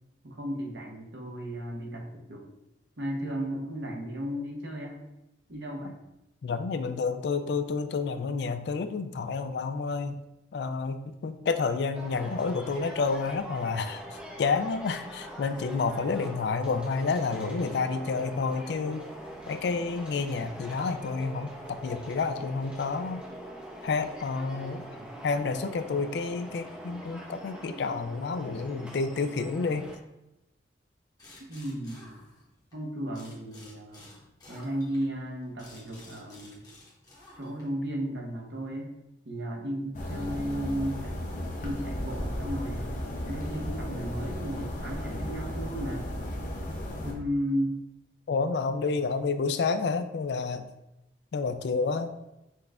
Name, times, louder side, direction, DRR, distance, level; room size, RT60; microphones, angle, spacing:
voice 1, 0.2-2.5 3.0-5.0 5.5-5.9 24.5-25.1 31.5-32.1 32.7-34.1 34.5-36.6 37.4-38.9 39.2-43.0 43.2-46.1 47.0-47.8, equal, 65° right, 0 dB, 0.9 m, -34 dB
voice 2, 6.4-10.2 10.5-14.0 14.4-19.0 19.5-23.2 23.8-24.8 25.2-29.9 48.3-50.7 51.3-52.1, left 4 dB, 60° left, 10 dB, 0.3 m, -29 dB
sound 1, 11.9-30.0, equal, 5° right, 0.5 m, -43 dB
sound 2, 31.2-32.8 33.1-37.8, left 1 dB, 20° left, 0.9 m, -52 dB
sound 3, 39.9-47.1, left 1 dB, 45° left, 0.7 m, -35 dB
6.0 x 2.4 x 3.3 m, 0.91 s
head